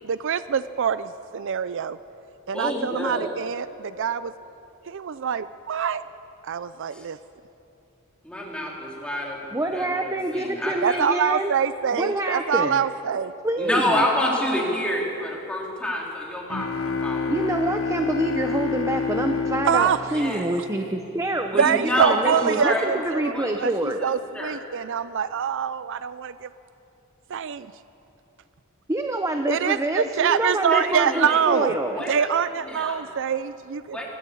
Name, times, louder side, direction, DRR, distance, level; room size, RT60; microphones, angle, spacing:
voice 1, 0.0-2.0 2.5-4.3 4.9-6.0 6.4-7.2 10.8-13.3 19.6-20.0 21.6-23.4 23.6-26.5 27.3-27.6 29.5-31.8 32.1-34.0, right 7 dB, 60° right, 14 dB, 0.5 m, -24 dB
voice 2, 2.5-3.3 6.9-7.0 8.2-11.0 13.6-16.7 17.0-17.3 20.1-20.5 21.5-22.9 23.2-23.7 24.0-24.6 30.7-31.4 32.0-33.1 33.9-34.1, left 1 dB, 5° left, -3 dB, 3.5 m, -28 dB
voice 3, 9.5-11.5 11.9-12.8 13.4-14.0 17.3-24.0 28.9-32.0, right 1 dB, 15° right, 5 dB, 0.7 m, -26 dB
sound 1, 16.5-21.2, left 5 dB, 70° left, 1.2 m, -28 dB
22.0 x 14.5 x 8.3 m, 2.9 s
head